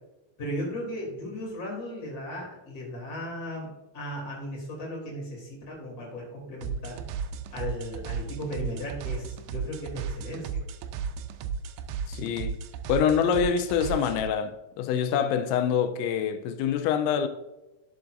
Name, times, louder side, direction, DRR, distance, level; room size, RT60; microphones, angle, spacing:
voice 1, 0.4-7.0 7.5-10.6, equal, 25° left, 2.6 m, -36 dB
sound 1, 6.6-14.3, right 6 dB, 80° right, 2.3 m, -34 dB
voice 2, 12.1-12.6 12.9-17.3, left 7 dB, 90° left, 2.9 m, -25 dB
11.0 x 7.5 x 2.6 m
omnidirectional pair, 5.2 m